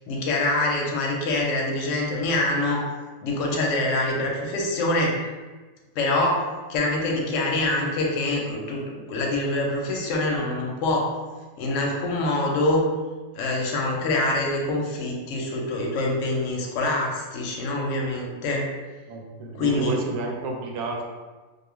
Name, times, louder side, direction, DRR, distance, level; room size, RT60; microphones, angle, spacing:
voice 1, 0.1-2.8 3.2-5.1 6.0-6.4 6.7-11.1 11.6-12.8 13.3-18.6 19.5-20.0, left 2 dB, 70° left, -1 dB, 0.9 m, -25 dB
voice 2, 19.1-21.0, right 3 dB, 90° right, 0 dB, 1.0 m, -30 dB
2.4 x 2.3 x 3.0 m, 1.3 s
omnidirectional pair, 1.5 m